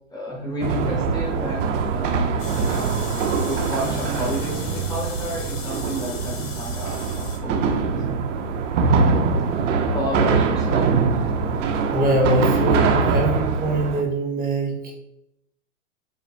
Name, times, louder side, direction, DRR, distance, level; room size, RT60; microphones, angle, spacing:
voice 1, 0.1-2.1 2.6-7.7 9.9-11.0, equal, 10° left, -4 dB, 1.4 m, -31 dB
sound 1, 0.6-14.0, right 4 dB, 65° right, 1.2 m, -23 dB
sound 2, 2.4-7.4, left 5 dB, 55° left, 2.2 m, -38 dB
voice 2, 11.9-14.9, right 1 dB, 25° right, -1 dB, 2.2 m, -23 dB
7.7 x 5.6 x 2.3 m, 0.82 s
hypercardioid pair, 125°, 39 cm